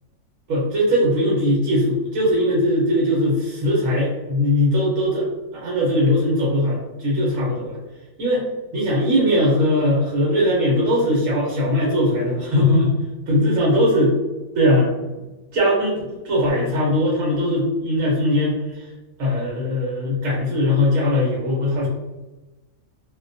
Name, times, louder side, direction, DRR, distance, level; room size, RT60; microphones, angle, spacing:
voice 1, 0.5-5.3 5.5-7.8 8.2-8.4 8.7-12.9 13.3-14.1 14.5-14.9 15.5-18.8 19.2-21.9, left 1 dB, 70° right, -4 dB, 1.2 m, -20 dB
2.6 x 2.1 x 2.5 m, 1.1 s
omnidirectional pair, 1.5 m